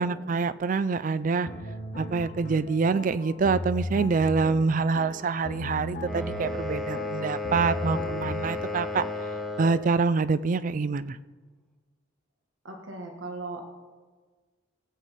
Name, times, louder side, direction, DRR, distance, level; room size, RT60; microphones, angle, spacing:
voice 1, 0.0-1.5 2.0-9.0 9.6-11.2, right 4 dB, 40° right, 16 dB, 0.4 m, -26 dB
sound 1, 1.4-9.4, left 1 dB, 50° left, 1.5 m, -36 dB
sound 2, 6.0-9.9, left 2 dB, ahead, 1.1 m, -33 dB
voice 2, 12.6-13.6, right 2 dB, 85° right, 2 dB, 1.4 m, -38 dB
17.0 x 8.1 x 4.1 m, 1.4 s
head